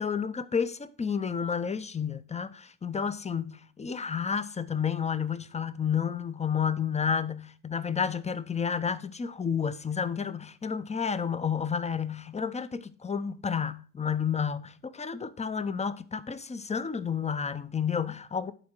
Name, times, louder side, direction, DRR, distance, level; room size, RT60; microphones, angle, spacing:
voice 1, 0.0-18.5, left 7 dB, 20° left, 0.7 m, -31 dB
11.0 x 4.3 x 4.6 m
hypercardioid pair, 60°, 35 cm